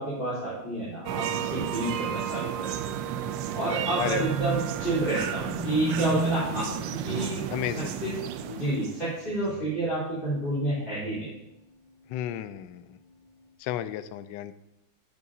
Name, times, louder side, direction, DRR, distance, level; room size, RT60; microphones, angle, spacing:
voice 1, 0.0-2.7 3.5-6.7 7.0-7.5 8.0-8.1 8.5-11.3, right 1 dB, 25° left, -11 dB, 3.9 m, -29 dB
sound 1, 1.1-9.4, right 9 dB, 75° right, 1.1 m, -33 dB
sound 2, 3.8-7.8 8.3-8.8 9.2-9.8 10.3-10.5 11.0-11.1, right 2 dB, 30° right, 0.7 m, -35 dB
voice 2, 4.0-4.3 6.6-6.8 7.5-8.0 12.1-13.0 13.6-14.5, left 11 dB, 75° left, 13 dB, 1.0 m, -33 dB
11.0 x 8.3 x 2.7 m, 0.87 s
omnidirectional pair, 2.3 m